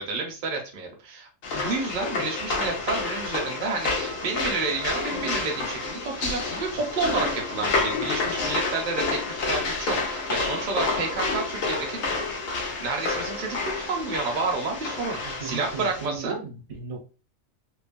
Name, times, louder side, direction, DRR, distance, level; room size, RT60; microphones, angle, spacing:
voice 1, 0.0-12.1 12.5-16.3, right 3 dB, 45° right, 1 dB, 0.7 m, -30 dB
sound 1, 1.4-16.1, left 3 dB, 85° left, 1.2 m, -29 dB
voice 2, 15.2-17.0, right 4 dB, 65° right, 0 dB, 1.1 m, -36 dB
3.0 x 2.0 x 2.5 m, 0.33 s
omnidirectional pair, 1.3 m